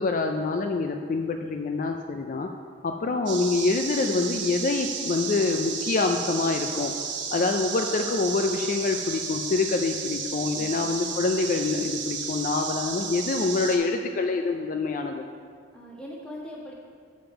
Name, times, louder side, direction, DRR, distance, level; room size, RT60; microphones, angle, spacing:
voice 1, 0.0-2.5 2.8-6.9 7.3-15.2, left 3 dB, 45° left, 4 dB, 0.4 m, -26 dB
voice 2, 3.0-3.3 10.6-10.9 15.7-16.7, equal, 5° left, -4 dB, 1.3 m, -41 dB
sound 1, 3.3-13.8, right 6 dB, 80° right, 1.0 m, -33 dB
7.2 x 5.2 x 5.7 m, 2.1 s
head